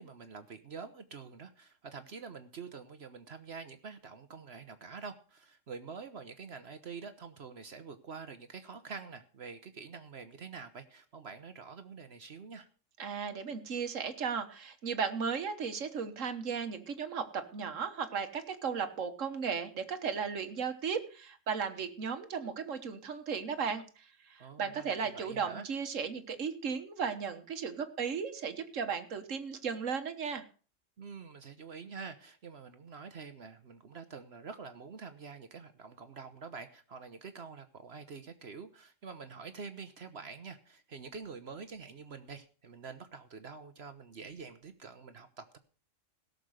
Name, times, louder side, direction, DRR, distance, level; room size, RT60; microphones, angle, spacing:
voice 1, 0.0-12.7 24.4-25.7 31.0-45.6, right 5 dB, 60° right, 10 dB, 1.2 m, -46 dB
voice 2, 13.0-30.4, right 6 dB, 85° right, 8 dB, 1.6 m, -36 dB
17.0 x 6.7 x 6.4 m, 0.38 s
omnidirectional pair, 1.3 m